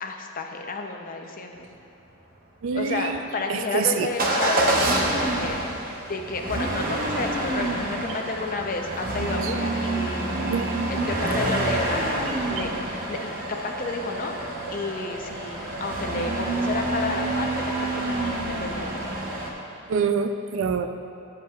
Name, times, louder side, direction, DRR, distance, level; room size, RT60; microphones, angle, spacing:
voice 1, 0.0-1.7 2.7-5.6 6.0-10.4 10.9-14.4 14.7-19.2, left 3 dB, 40° left, 3 dB, 0.6 m, -31 dB
voice 2, 2.6-3.2 3.5-4.1 9.4-9.5 10.5-10.7 19.9-20.9, right 6 dB, 60° right, 8 dB, 0.4 m, -25 dB
Motor vehicle (road) / Engine starting / Accelerating revving vroom, 4.2-19.5, right 1 dB, 40° right, 0.9 m, -27 dB
11.0 x 7.3 x 2.4 m, 2.9 s
head